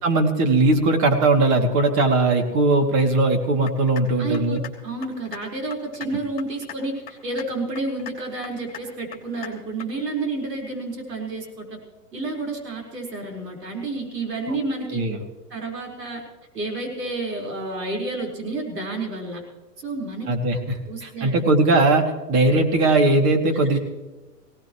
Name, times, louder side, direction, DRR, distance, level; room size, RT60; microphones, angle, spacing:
voice 1, 0.0-4.6 14.5-14.6 14.9-15.2 20.3-23.8, right 2 dB, 40° right, 5 dB, 2.6 m, -19 dB
sound 1, 3.7-4.0 4.3-4.7 5.0-5.4 5.7-6.1 6.4-6.8 7.1-7.5 7.7-8.1 8.4-8.8 9.1-9.5 9.8-9.9, left 9 dB, 20° left, 2.8 m, -37 dB
voice 2, 4.2-11.8 12.1-15.0 15.5-16.2 16.5-19.4 19.8-20.3 20.9-21.4, right 2 dB, 85° right, 1 dB, 4.7 m, -30 dB
20.0 x 18.0 x 3.1 m, 1.2 s
hypercardioid pair, 125°, 47 cm